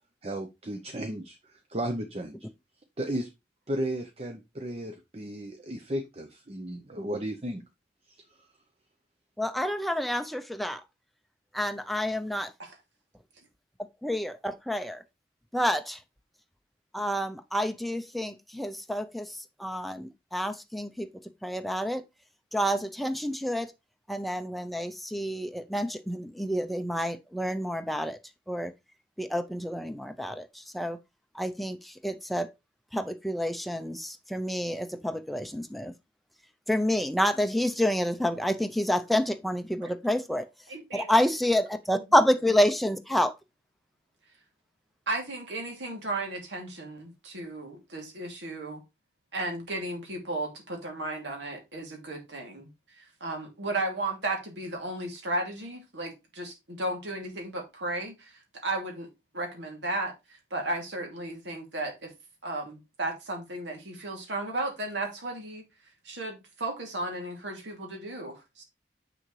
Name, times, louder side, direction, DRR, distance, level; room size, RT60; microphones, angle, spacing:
voice 1, 0.2-2.5 3.0-3.3 3.7-7.6 8.1-8.5, right 1 dB, 35° right, 0.7 m, -34 dB
voice 2, 9.4-10.8 11.5-12.5 14.0-15.0 15.5-16.0 16.9-19.3 19.6-21.1 21.4-22.0 22.5-23.7 24.1-28.2 28.5-28.7 29.2-30.5 30.7-31.0 31.4-31.8 32.0-32.5 32.9-35.9 36.7-40.4 40.9-43.3, equal, ahead, 0.5 m, -28 dB
voice 3, 40.7-41.1 42.0-42.1 45.1-48.8 49.3-52.7 53.2-58.3 58.6-59.1 59.3-60.1 60.5-62.1 62.4-65.6 66.0-68.6, right 2 dB, 85° right, 2.6 m, -34 dB
6.7 x 6.3 x 3.2 m
head